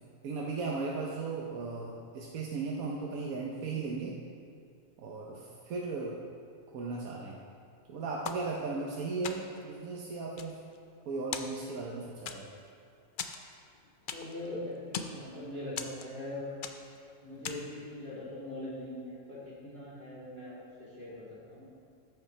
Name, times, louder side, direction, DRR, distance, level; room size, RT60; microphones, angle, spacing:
voice 1, 0.2-4.2 5.0-6.2 6.7-7.4 7.9-10.6 11.1-12.5, right 3 dB, 85° right, -3 dB, 1.3 m, -36 dB
sound 1, 8.2-8.9 9.2-9.7 10.2-11.0 11.3-11.9 12.3-12.7 13.2-14.5 14.7-15.2 15.8-16.3 16.6-17.0 17.4-17.8, left 6 dB, 65° left, 0.5 m, -40 dB
voice 2, 14.1-16.5 17.2-21.7, left 1 dB, 45° right, -8 dB, 2.9 m, -42 dB
13.5 x 5.7 x 4.4 m, 2.3 s
omnidirectional pair, 1.5 m